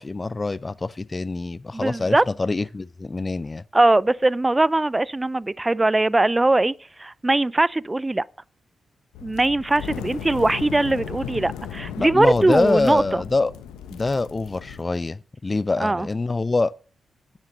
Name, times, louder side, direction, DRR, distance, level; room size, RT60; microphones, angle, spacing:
voice 1, 0.0-3.6 12.0-13.5 13.9-16.7, left 3 dB, 35° left, 0.5 m, -25 dB
voice 2, 1.7-2.2 3.7-6.7 7.0-8.2 9.2-13.2 15.8-16.1, right 2 dB, 25° right, 0.5 m, -20 dB
sound 1, 9.1-14.8, left 8 dB, 90° left, 1.1 m, -36 dB
9.6 x 7.5 x 6.1 m
supercardioid pair, 40°, 0 cm